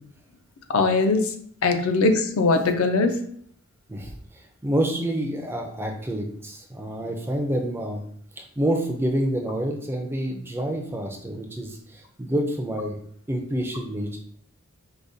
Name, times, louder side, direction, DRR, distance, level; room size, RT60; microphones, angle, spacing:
voice 1, 0.7-1.3 1.6-3.2, left 3 dB, 70° left, 6 dB, 0.4 m, -21 dB
voice 2, 3.9-8.0 8.4-13.0 13.3-14.2, right 1 dB, 10° right, 2 dB, 0.3 m, -28 dB
4.8 x 2.2 x 2.6 m, 0.64 s
head